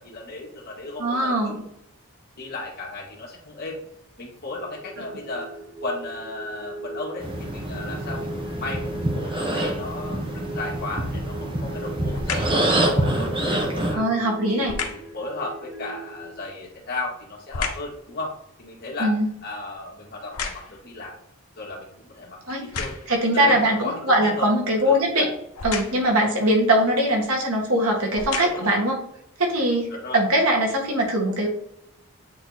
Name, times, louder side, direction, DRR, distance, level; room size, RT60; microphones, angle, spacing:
voice 1, 0.0-1.6 2.3-3.8 4.2-5.5 5.8-12.5 12.9-14.0 14.5-18.3 18.6-19.1 19.4-21.1 21.6-23.0 23.3-24.5 24.8-25.4 28.3-28.8 29.9-30.2, left 2 dB, 45° left, -4 dB, 1.9 m, -35 dB
voice 2, 1.0-1.6 14.0-14.8 19.0-19.3 22.5-22.6 23.1-25.3 25.6-29.0 29.4-31.5, right 1 dB, 90° right, 0 dB, 1.7 m, -21 dB
sound 1, 4.7-16.3, right 2 dB, 60° right, 1.3 m, -39 dB
sound 2, 7.2-14.0, right 1 dB, 25° right, 0.9 m, -26 dB
sound 3, 12.1-12.6 14.6-15.1 16.6-18.0 18.5-21.0 21.6-21.7 22.5-23.2 25.5-26.1 27.2-27.3 28.0-28.8 29.4-29.5, left 5 dB, 85° left, 0.9 m, -33 dB
8.6 x 3.0 x 4.0 m, 0.74 s
head